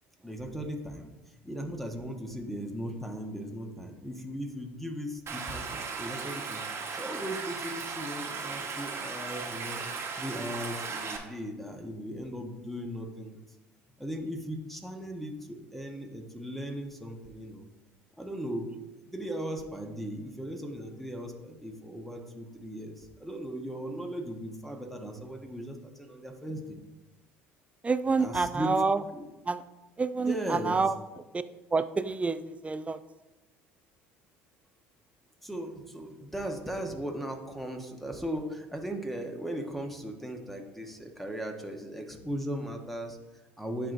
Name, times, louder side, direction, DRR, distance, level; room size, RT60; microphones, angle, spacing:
voice 1, 0.2-9.8 10.2-13.4 14.0-17.7 18.2-18.8 19.0-26.8 28.2-29.3 30.1-30.8 35.4-43.9, equal, ahead, 3 dB, 1.1 m, -38 dB
Stream, 5.3-11.2, right 5 dB, 40° right, 1.2 m, -37 dB
voice 2, 27.8-29.0 29.5-29.6 30.0-30.9 31.3-31.4 31.7-33.0, right 4 dB, 20° right, 13 dB, 0.4 m, -28 dB
10.0 x 4.6 x 2.6 m, 1.0 s
hypercardioid pair, 75°, 7 cm